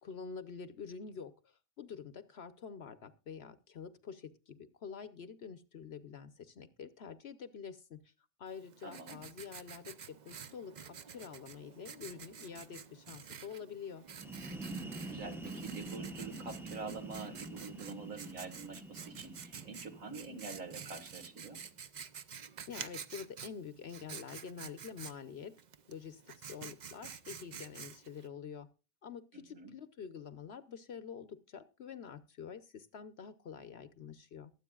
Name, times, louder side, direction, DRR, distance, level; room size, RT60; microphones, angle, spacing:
voice 1, 0.0-8.0 8.4-14.0 22.7-25.5 25.9-28.7 29.0-34.5, left 6 dB, 55° left, 13 dB, 1.0 m, -47 dB
Writing, 8.5-28.3, right 7 dB, 45° right, 0.6 m, -50 dB
voice 2, 8.8-9.2 15.1-21.6 29.3-29.7, right 4 dB, 70° right, 6 dB, 2.2 m, -46 dB
sound 1, 14.1-21.7, right 2 dB, ahead, 0.6 m, -46 dB
22.5 x 8.2 x 2.3 m, 0.32 s
omnidirectional pair, 1.4 m